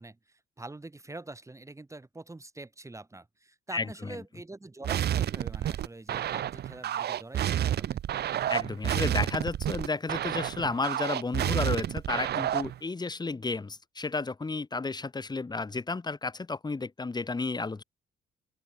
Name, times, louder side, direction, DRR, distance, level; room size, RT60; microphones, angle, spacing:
voice 1, 0.0-8.0, right 2 dB, 15° right, 1.6 m, -45 dB
voice 2, 3.7-4.2 8.5-17.8, left 3 dB, 20° left, 1.2 m, -32 dB
sound 1, 4.8-12.8, right 11 dB, 55° right, 0.6 m, -30 dB
open air
cardioid pair, 90°, 20 cm